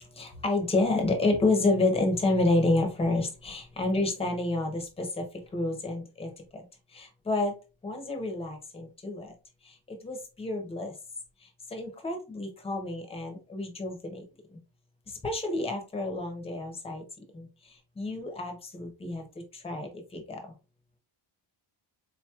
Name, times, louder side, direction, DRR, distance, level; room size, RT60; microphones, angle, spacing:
voice 1, 0.1-5.2 5.5-6.6 6.9-7.5 7.8-9.3 9.6-10.9 11.7-14.2 14.5-14.6 15.2-17.0 17.3-17.5 18.0-19.3 19.5-20.5, left 2 dB, 10° left, 4 dB, 0.6 m, -29 dB
3.9 x 3.0 x 2.3 m, 0.31 s
cardioid pair, 155°, 50 cm